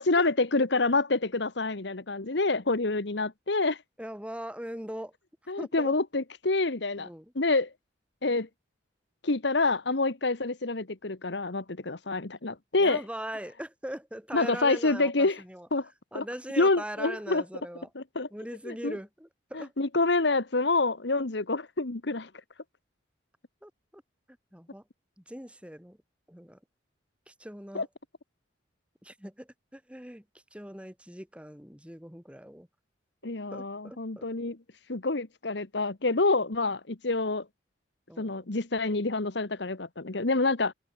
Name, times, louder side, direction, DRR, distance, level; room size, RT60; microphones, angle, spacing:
voice 1, 0.0-3.8 5.5-7.1 7.3-7.7 8.2-8.5 9.2-13.0 14.3-15.4 15.7-15.9 16.1-16.2 16.6-17.4 17.9-18.3 18.6-19.0 19.5-22.3 27.7-27.9 33.2-34.6 34.9-37.4 38.2-40.7, left 3 dB, 65° left, 1.3 m, -27 dB
voice 2, 4.0-5.1 5.6-5.9 7.0-7.3 12.8-15.7 16.1-17.9 18.3-19.7 23.6-24.0 24.5-24.8 25.3-26.0 26.3-26.6 27.3-27.9 29.0-30.2 30.5-32.7 33.5-34.3 38.1-38.3, equal, 5° right, 4.0 m, -40 dB
open air
head